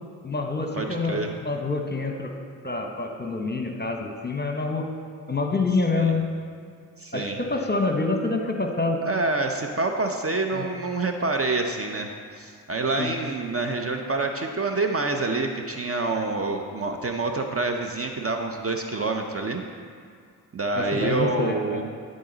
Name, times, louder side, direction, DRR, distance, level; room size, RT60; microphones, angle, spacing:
voice 1, 0.2-2.3 2.6-4.8 5.3-6.2 7.1-9.0 10.5-10.6 13.0-13.1 20.7-21.8, left 3 dB, 25° left, 3 dB, 1.0 m, -26 dB
voice 2, 0.7-1.3 5.9-6.1 7.0-7.4 9.0-19.6 20.5-21.9, right 3 dB, 30° right, 4 dB, 0.7 m, -27 dB
11.5 x 4.0 x 3.9 m, 2.2 s
supercardioid pair, 40°, 44 cm